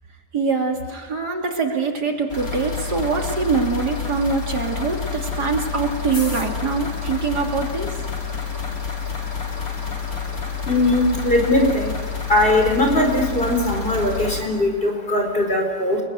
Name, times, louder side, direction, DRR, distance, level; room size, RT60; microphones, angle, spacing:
voice 1, 0.3-8.0, right 4 dB, 65° right, 2 dB, 3.4 m, -23 dB
sound 1, 2.3-14.4, left 6 dB, 50° left, 4.2 m, -29 dB
voice 2, 10.7-11.9 12.3-16.0, left 1 dB, 30° left, 2 dB, 4.6 m, -20 dB
29.5 x 21.0 x 9.3 m, 1.5 s
omnidirectional pair, 1.9 m